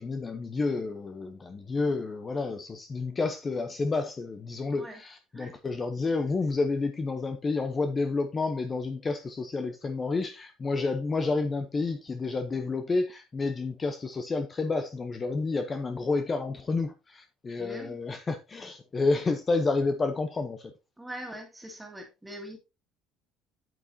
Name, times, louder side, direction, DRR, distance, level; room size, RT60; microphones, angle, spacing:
voice 1, 0.0-20.7, left 3 dB, 20° left, 0.8 m, -30 dB
voice 2, 17.6-17.9 21.0-22.6, equal, 5° right, 2.3 m, -42 dB
8.9 x 8.7 x 2.7 m
cardioid pair, 170°, 0 cm